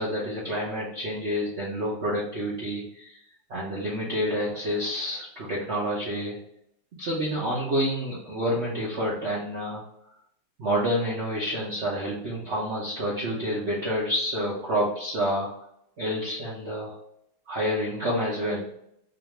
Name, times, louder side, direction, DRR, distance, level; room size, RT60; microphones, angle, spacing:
voice 1, 0.0-3.2 3.5-6.4 7.0-9.8 10.6-15.6 16.0-17.0 17.5-18.7, equal, 65° right, -6 dB, 0.6 m, -28 dB
4.2 x 2.6 x 3.2 m, 0.74 s
omnidirectional pair, 2.3 m